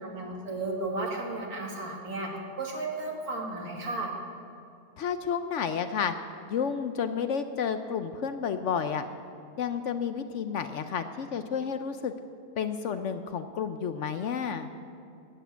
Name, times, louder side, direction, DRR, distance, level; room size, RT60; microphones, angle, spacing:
voice 1, 0.0-2.3 2.6-4.1, right 2 dB, 80° right, -1 dB, 2.7 m, -34 dB
voice 2, 5.0-6.1 6.5-9.1 9.6-12.1 12.6-14.7, left 7 dB, 65° left, 9 dB, 0.8 m, -31 dB
12.5 x 8.4 x 9.1 m, 2.5 s
omnidirectional pair, 1.6 m